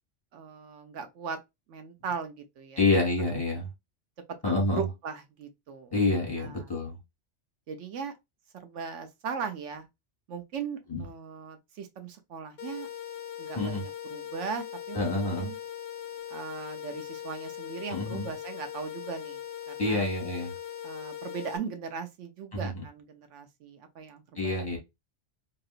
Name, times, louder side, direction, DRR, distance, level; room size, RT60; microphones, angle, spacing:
voice 1, 0.3-1.4 1.7-2.8 4.4-5.9 6.4-6.7 7.7-8.1 8.6-9.9 10.3-12.9 13.4-15.6 16.3-19.4 19.7-20.1 20.8-24.5, right 6 dB, 85° right, 1.1 m, -38 dB
voice 2, 2.8-3.7 4.4-4.8 5.9-7.0 10.9-11.0 13.6-13.8 14.9-15.5 17.9-18.3 19.8-20.5 22.5-22.8 24.3-24.8, left 2 dB, 20° left, 1.6 m, -27 dB
sound 1, 12.6-21.6, left 10 dB, 60° left, 0.7 m, -40 dB
3.0 x 2.8 x 2.4 m
omnidirectional pair, 1.2 m